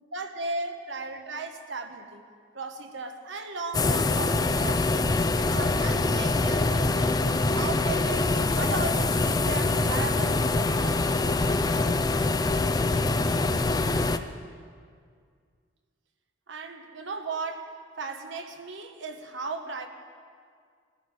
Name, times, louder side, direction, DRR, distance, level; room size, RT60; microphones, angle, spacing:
voice 1, 0.1-2.2 2.5-5.0 5.3-11.4 16.5-19.9, right 3 dB, 70° right, 6 dB, 1.2 m, -36 dB
sound 1, 3.7-14.2, left 2 dB, 20° left, 0.4 m, -24 dB
20.5 x 14.0 x 4.9 m, 2.1 s
head